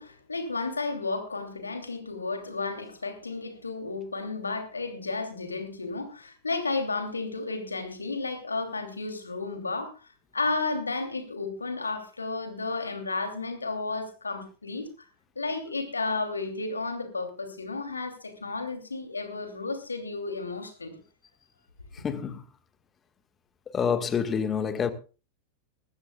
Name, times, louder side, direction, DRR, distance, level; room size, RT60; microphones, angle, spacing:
voice 1, 0.0-9.9 10.3-15.1 15.4-21.0, left 3 dB, 80° left, 2.9 m, -32 dB
voice 2, 22.0-22.4 23.7-24.9, left 7 dB, 20° left, 1.6 m, -27 dB
20.5 x 15.5 x 2.3 m
figure-of-eight pair, 90°, 0 cm